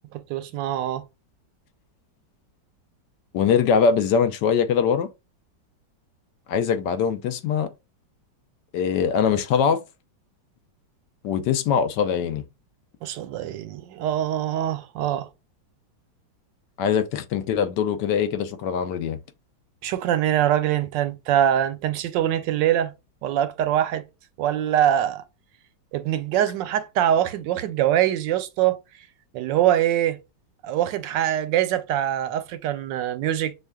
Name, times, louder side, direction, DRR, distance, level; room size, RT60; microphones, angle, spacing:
voice 1, 0.1-1.0 13.0-15.3 19.8-22.9 23.2-24.1 24.4-25.2 25.9-28.8 29.3-30.2 30.6-33.5, right 11 dB, 80° right, 1.2 m, -23 dB
voice 2, 3.3-5.1 6.5-7.7 8.7-9.8 11.2-12.4 16.8-19.2, left 7 dB, 75° left, 1.2 m, -22 dB
6.3 x 2.3 x 2.2 m
omnidirectional pair, 2.0 m